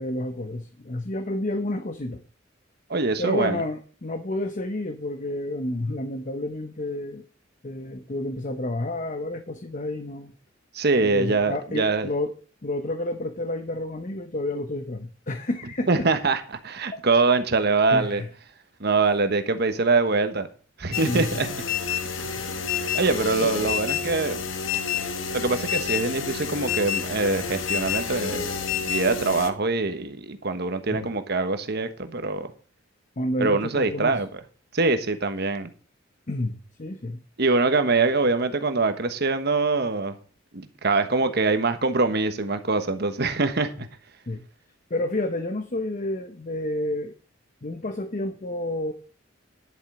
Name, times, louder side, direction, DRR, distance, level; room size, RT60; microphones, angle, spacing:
voice 1, 0.0-2.2 3.2-7.2 7.6-10.3 11.0-12.3 12.6-16.1 16.9-17.0 17.9-18.3 20.9-21.3 22.2-22.3 23.4-23.5 30.9-31.1 33.2-34.2 36.3-37.2 44.3-44.4 44.9-47.1 47.6-48.9, left 1 dB, 40° left, 0.8 m, -30 dB
voice 2, 2.9-3.6 10.7-12.1 15.9-18.2 18.8-20.5 20.8-21.5 22.2-22.3 22.9-24.4 25.3-28.5 28.8-32.5 33.4-34.3 34.7-35.7 37.4-40.2 40.5-43.9, right 3 dB, 55° right, 1.3 m, -24 dB
sound 1, 20.9-29.5, left 6 dB, 75° left, 1.3 m, -29 dB
11.0 x 7.4 x 4.9 m
head